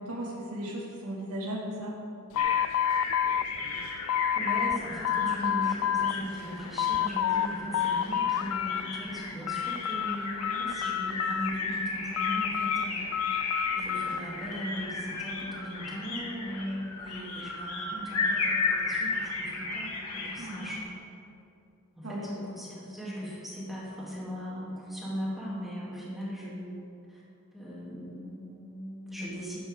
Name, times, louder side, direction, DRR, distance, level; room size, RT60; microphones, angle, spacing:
voice 1, 0.1-1.9 20.4-20.6 22.0-22.3, right 1 dB, 90° right, -5 dB, 2.4 m, -36 dB
sound 1, 2.3-4.8 5.0-6.1 6.5-7.5 7.7-8.8 9.2-10.2 10.4-11.7 12.2-14.2, left 10 dB, 65° left, 0.4 m, -29 dB
sound 2, 2.4-20.8, left 3 dB, 90° left, 2.1 m, -34 dB
voice 2, 4.4-13.0 13.7-21.0 22.0-26.7 27.5-29.6, equal, ahead, -9 dB, 3.1 m, -38 dB
14.5 x 11.5 x 3.9 m, 2.5 s
head